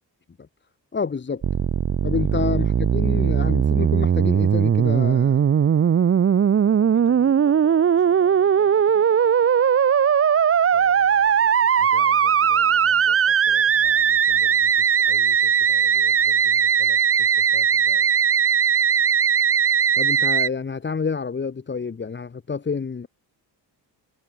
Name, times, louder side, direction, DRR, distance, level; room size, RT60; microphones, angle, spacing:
voice 1, 0.9-1.4 2.0-5.4 19.9-23.1, left 5 dB, 25° left, 2.2 m, -28 dB
Musical instrument, 1.4-20.5, right 8 dB, 30° right, 0.9 m, -19 dB
voice 2, 6.6-9.1 10.7-18.1, left 7 dB, 40° left, 6.5 m, -45 dB
wide cardioid pair, 175°, 43 cm